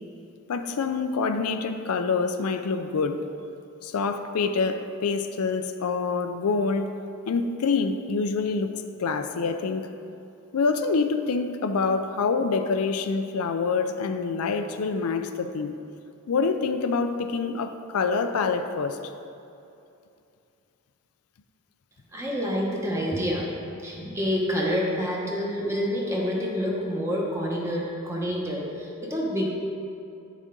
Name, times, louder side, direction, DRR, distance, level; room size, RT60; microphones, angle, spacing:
voice 1, 0.5-3.2 3.8-6.9 7.3-8.7 9.0-9.9 10.5-15.8 16.3-19.0, left 4 dB, 85° left, 8 dB, 0.4 m, -26 dB
voice 2, 22.1-23.5 23.8-29.5, equal, 15° right, -3 dB, 1.1 m, -28 dB
9.2 x 6.3 x 3.8 m, 2.7 s
head